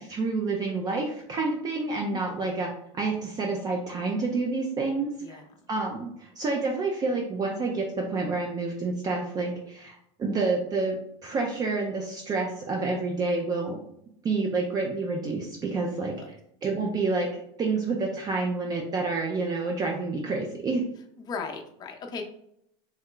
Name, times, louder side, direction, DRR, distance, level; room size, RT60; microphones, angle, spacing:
voice 1, 0.0-5.4 5.7-13.8 14.2-16.4 16.6-20.8, right 3 dB, 25° right, 0 dB, 0.5 m, -29 dB
voice 2, 21.2-22.2, left 5 dB, 25° left, 3 dB, 0.5 m, -36 dB
3.2 x 2.1 x 3.7 m, 0.73 s
supercardioid pair, 120°, 16 cm